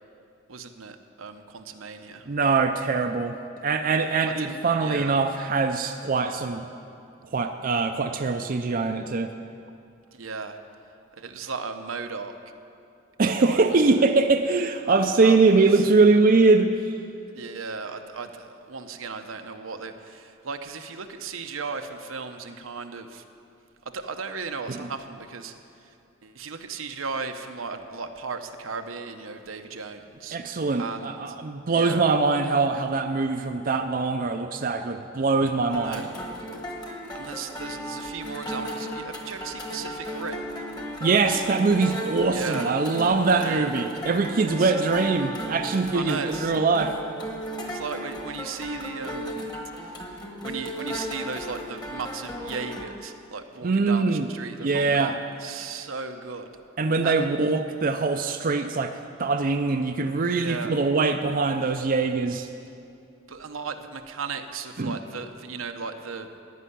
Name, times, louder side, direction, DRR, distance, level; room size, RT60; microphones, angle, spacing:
voice 1, 0.5-2.3 4.3-5.2 10.1-10.6 11.2-12.4 13.4-14.0 14.8-15.8 17.3-23.2 23.9-25.5 26.2-30.4 30.8-31.4 31.7-32.1 35.7-36.0 36.9-40.4 42.3-42.7 43.4-43.7 44.5-44.7 45.9-46.5 47.6-49.4 49.8-56.5 57.0-57.3 60.3-60.8 63.3-66.3, right 5 dB, 85° right, 6 dB, 0.8 m, -36 dB
voice 2, 2.3-6.7 7.3-9.3 13.2-16.7 24.7-24.9 30.3-36.1 41.0-47.0 53.6-54.3 54.6-55.1 56.8-62.5 64.8-65.0, right 4 dB, 45° right, 6 dB, 0.5 m, -23 dB
sound 1, 35.7-52.9, equal, 20° left, 1.3 m, -35 dB
15.0 x 5.6 x 9.9 m, 2.5 s
head